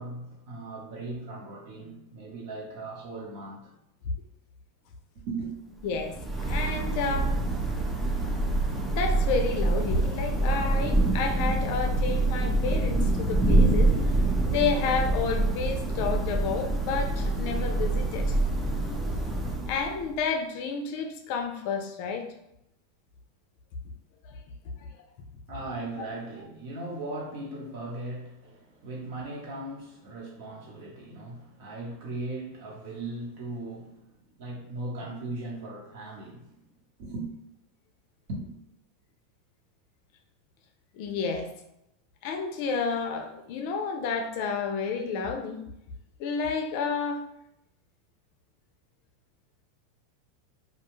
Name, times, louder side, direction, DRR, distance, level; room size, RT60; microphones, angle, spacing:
voice 1, 0.0-3.7 5.3-5.5 25.5-36.6 37.0-37.3 38.3-38.5, right 2 dB, 60° right, 1.0 m, -38 dB
voice 2, 5.8-6.1 6.4-7.4 8.9-14.1 14.4-18.4 19.7-22.3 24.3-24.4 40.9-41.5 42.2-45.6 46.2-47.2, left 5 dB, 55° left, 0.4 m, -30 dB
Thunder / Rain, 5.8-20.2, right 2 dB, 10° right, 0.4 m, -26 dB
2.4 x 2.2 x 3.0 m
supercardioid pair, 140°, 0 cm